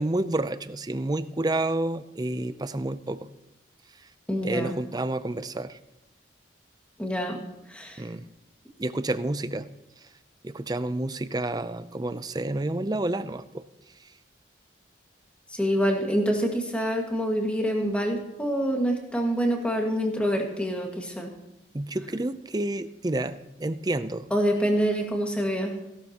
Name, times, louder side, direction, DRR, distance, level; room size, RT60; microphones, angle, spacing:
voice 1, 0.0-3.3 4.4-5.8 8.0-8.2 8.8-9.7 10.4-13.6 21.7-24.3, right 2 dB, 20° right, 13 dB, 0.5 m, -29 dB
voice 2, 4.3-4.7 7.0-7.4 7.7-8.0 15.5-21.3 24.3-25.7, equal, 5° left, 1 dB, 1.7 m, -26 dB
17.0 x 12.0 x 2.9 m, 0.96 s
head